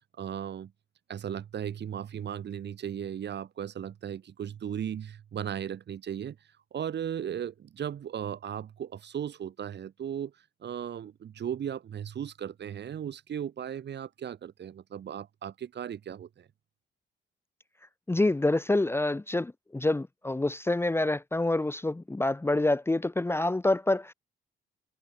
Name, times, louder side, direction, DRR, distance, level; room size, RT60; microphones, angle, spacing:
voice 1, 0.2-0.7 1.1-6.4 6.7-10.3 10.6-16.5, right 9 dB, 60° right, 5.1 m, -36 dB
voice 2, 18.1-24.1, left 2 dB, 10° left, 0.9 m, -27 dB
cardioid pair, 90°, 20 cm